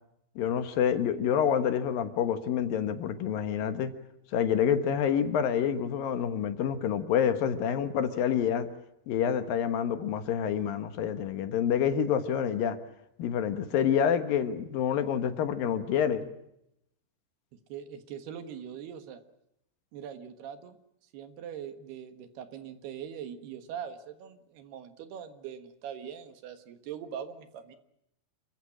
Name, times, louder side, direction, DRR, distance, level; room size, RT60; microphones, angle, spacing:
voice 1, 0.4-3.9 4.3-8.7 9.1-12.8 13.2-16.3, left 8 dB, 65° left, 2.9 m, -27 dB
voice 2, 17.7-19.2 19.9-20.8 21.1-27.8, right 8 dB, 80° right, 3.5 m, -42 dB
27.5 x 15.5 x 9.9 m
omnidirectional pair, 4.6 m